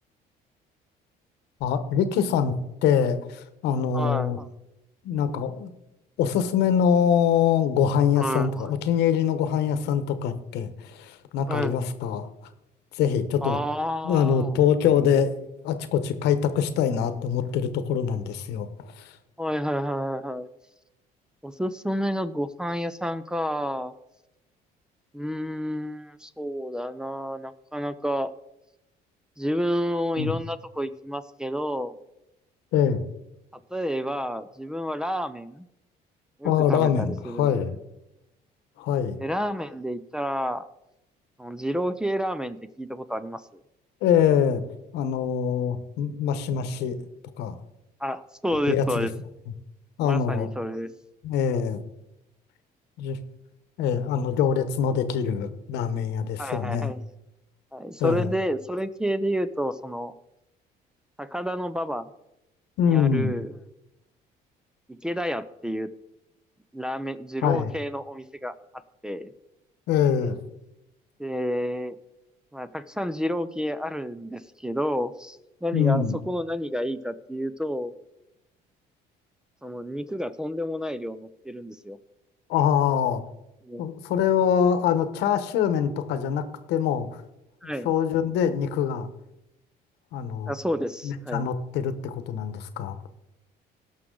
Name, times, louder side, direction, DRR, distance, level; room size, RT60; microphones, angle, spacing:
voice 1, 1.6-2.6 2.8-4.4 5.0-5.7 6.2-12.3 12.9-13.6 14.0-19.1 30.2-30.4 32.7-33.0 36.4-37.7 38.8-39.2 44.0-44.6 44.9-47.0 47.4-47.5 48.7-49.1 50.0-50.5 51.2-51.8 53.0-53.2 53.8-56.9 58.0-58.3 62.8-63.3 67.4-67.7 69.9-70.4 75.7-76.2 82.5-83.2 83.8-87.2 87.6-89.1 90.1-90.5 91.0-93.1, left 8 dB, 85° left, 11 dB, 1.1 m, -24 dB
voice 2, 3.9-4.5 8.2-8.7 11.5-11.8 13.4-14.6 19.4-20.5 21.4-23.9 25.1-28.3 29.4-31.9 33.5-35.7 36.4-37.5 39.2-40.7 41.4-43.6 48.0-49.1 50.0-50.9 56.4-57.0 57.7-60.1 61.2-62.1 62.8-63.5 64.9-65.9 66.7-68.5 69.0-69.3 71.2-72.0 72.5-77.9 79.6-82.0 83.6-83.9 87.6-87.9 90.5-91.4, equal, 5° right, 13 dB, 0.5 m, -30 dB
17.5 x 6.2 x 3.9 m, 0.89 s
cardioid pair, 110°, 17 cm